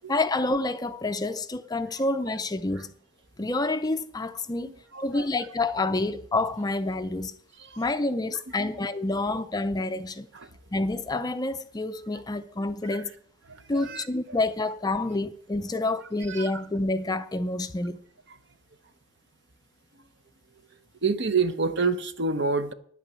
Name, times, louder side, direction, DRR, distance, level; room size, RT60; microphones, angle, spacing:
voice 1, 0.1-2.9 3.4-4.7 5.0-7.3 7.8-10.3 10.7-13.1 13.7-18.0, left 2 dB, 20° left, 0.4 m, -28 dB
voice 2, 4.6-5.3 7.5-7.8 8.6-8.8 10.3-10.5 12.8-13.0 13.5-14.4 16.3-16.7 18.3-18.4 19.9-20.0 21.0-22.7, right 4 dB, 55° right, 0.8 m, -29 dB
10.0 x 8.7 x 6.8 m
head